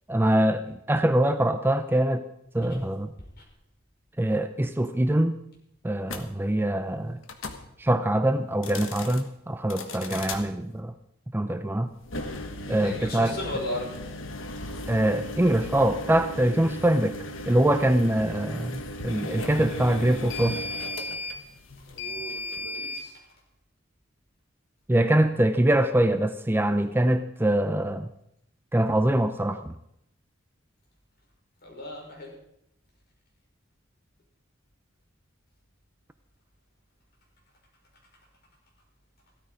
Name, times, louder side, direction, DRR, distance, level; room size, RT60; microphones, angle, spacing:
voice 1, 0.1-2.2 2.5-3.1 4.2-5.4 5.8-7.2 7.8-10.9 11.3-11.9 12.7-13.4 14.9-17.2 17.5-20.6 24.9-28.1 28.7-29.7, right 1 dB, 10° right, 10 dB, 0.5 m, -24 dB
sound 1, 6.1-6.2 7.2-7.6 8.5-9.2 9.7-10.4 12.0-23.0, left 2 dB, 75° left, 1.5 m, -36 dB
voice 2, 12.6-14.0 21.9-23.1 31.6-32.3, left 1 dB, 55° left, -1 dB, 5.6 m, -36 dB
15.5 x 13.5 x 5.1 m, 0.79 s
head